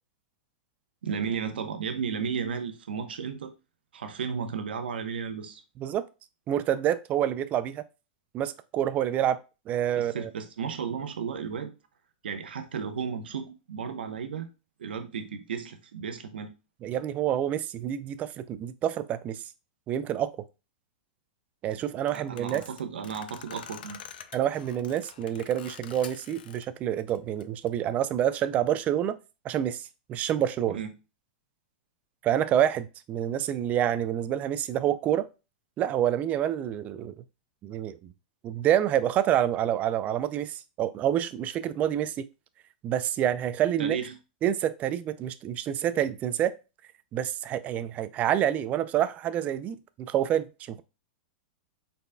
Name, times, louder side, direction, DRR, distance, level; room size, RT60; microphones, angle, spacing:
voice 1, 1.0-3.5 3.9-5.6 9.9-11.7 12.2-14.5 14.8-16.5 22.1-24.0 30.7-30.9 43.8-44.2, right 6 dB, 85° right, 0.9 m, -34 dB
voice 2, 6.5-7.8 8.3-9.4 9.7-10.3 16.8-19.4 19.9-20.3 21.6-22.6 24.3-29.2 29.4-30.8 32.2-35.3 35.8-37.1 37.6-38.1 38.4-42.3 42.8-44.0 44.4-46.5 47.1-50.8, right 11 dB, 30° right, 0.4 m, -27 dB
sound 1, 22.0-26.6 27.0-27.7, left 9 dB, 75° left, 0.5 m, -47 dB
5.4 x 4.1 x 2.2 m
hypercardioid pair, 135°, 5 cm